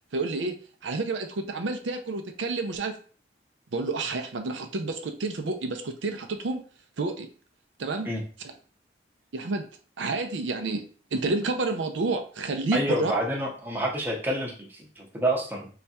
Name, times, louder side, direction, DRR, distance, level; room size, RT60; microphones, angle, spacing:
voice 1, 0.1-0.6 0.8-3.0 3.7-6.6 7.0-7.3 7.8-8.1 9.3-9.7 10.0-10.8 11.1-13.1, right 3 dB, 85° right, 6 dB, 0.5 m, -29 dB
voice 2, 12.7-15.7, right 1 dB, 10° right, -2 dB, 0.7 m, -28 dB
3.3 x 2.4 x 4.1 m, 0.41 s
head